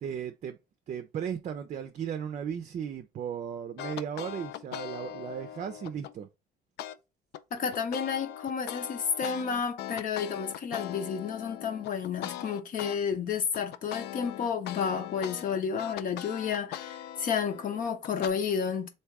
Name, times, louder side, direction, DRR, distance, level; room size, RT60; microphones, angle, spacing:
voice 1, 0.0-0.6 0.9-6.3, right 8 dB, 45° right, 0.5 m, -36 dB
sound 1, 3.8-6.1 6.8-7.0 7.3-13.0 13.3-18.3, left 12 dB, 80° left, 0.4 m, -40 dB
voice 2, 7.5-18.9, left 6 dB, 50° left, 0.9 m, -31 dB
3.4 x 2.7 x 4.6 m
cardioid pair, 110°, 17 cm